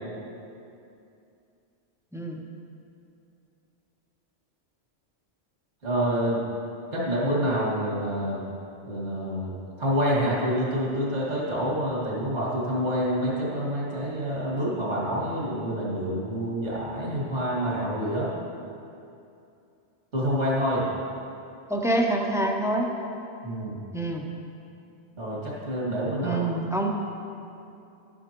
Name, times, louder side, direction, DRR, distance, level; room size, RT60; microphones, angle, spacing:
voice 1, 2.1-2.4 7.0-7.1 21.7-22.9 23.9-24.3 26.2-26.9, right 1 dB, 5° right, 1 dB, 0.5 m, -26 dB
voice 2, 5.8-6.4 6.9-8.4 8.8-18.3 20.1-20.9 23.4-23.8 25.2-26.4, equal, 80° right, -6 dB, 2.4 m, -27 dB
12.0 x 9.8 x 3.0 m, 2.6 s
omnidirectional pair, 1.2 m